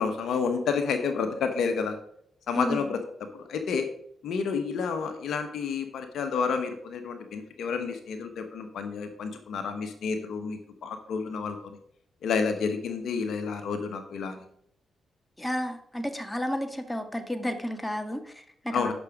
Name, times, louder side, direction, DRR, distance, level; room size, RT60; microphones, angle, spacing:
voice 1, 0.0-2.0 2.5-3.0 3.3-3.9 4.2-11.8 12.2-14.4 18.7-18.9, left 5 dB, 70° left, 7 dB, 1.1 m, -30 dB
voice 2, 2.5-2.9 15.4-18.9, equal, 10° left, 7 dB, 1.8 m, -32 dB
10.5 x 6.2 x 5.0 m, 0.70 s
hypercardioid pair, 40°, 0 cm